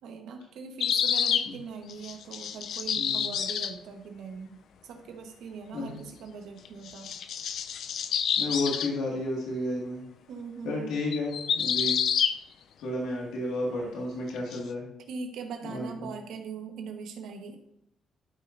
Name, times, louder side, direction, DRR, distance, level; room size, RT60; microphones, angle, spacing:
voice 1, 0.0-4.5 4.8-7.1 10.3-11.0 15.1-17.6, right 5 dB, 80° right, 4 dB, 1.3 m, -41 dB
sound 1, 0.8-1.5 1.9-3.8 6.6-8.9 11.1-12.4 14.3-14.6, left 8 dB, 70° left, 0.5 m, -28 dB
voice 2, 3.0-3.3 5.7-6.0 8.4-10.0 10.6-11.9 12.8-14.9 15.6-16.1, left 1 dB, 90° left, -3 dB, 2.0 m, -32 dB
12.0 x 5.5 x 2.6 m, 0.76 s
cardioid pair, 90°, 0 cm